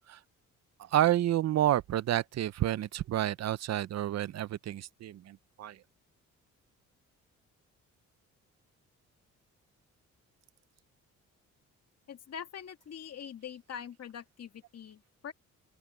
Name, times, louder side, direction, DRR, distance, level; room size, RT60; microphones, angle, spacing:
voice 1, 0.8-5.8, right 12 dB, 60° right, 0.7 m, -29 dB
voice 2, 12.1-15.3, left 8 dB, 55° left, 2.4 m, -44 dB
open air
cardioid pair, 90°, 30 cm